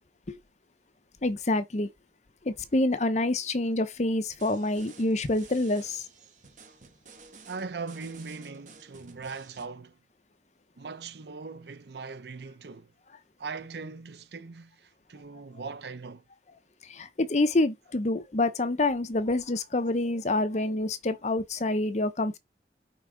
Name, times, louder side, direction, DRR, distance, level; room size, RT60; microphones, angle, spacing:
voice 1, 1.2-1.9 2.4-6.0 16.8-22.4, left 2 dB, 40° left, 0.7 m, -27 dB
sound 1, 4.3-9.6, right 4 dB, 45° right, 1.3 m, -52 dB
voice 2, 7.5-10.0 10.8-12.9 13.4-16.2, right 4 dB, 65° right, 0.6 m, -40 dB
5.6 x 3.6 x 5.0 m
head